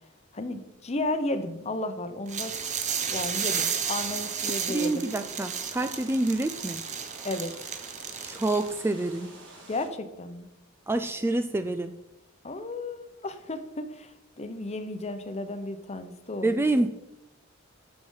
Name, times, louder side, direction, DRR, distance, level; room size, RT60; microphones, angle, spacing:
voice 1, 0.3-2.5 3.1-5.0 7.2-7.7 9.7-10.5 12.4-16.5, left 2 dB, 30° left, 9 dB, 0.8 m, -33 dB
sound 1, 2.3-8.8, right 7 dB, 35° right, 0.9 m, -32 dB
sound 2, 2.3-9.9, right 2 dB, 60° right, 3.3 m, -49 dB
voice 2, 4.7-6.8 8.2-9.3 10.9-12.0 16.4-16.9, right 2 dB, 10° right, 9 dB, 0.3 m, -27 dB
12.5 x 4.9 x 5.6 m, 0.94 s
head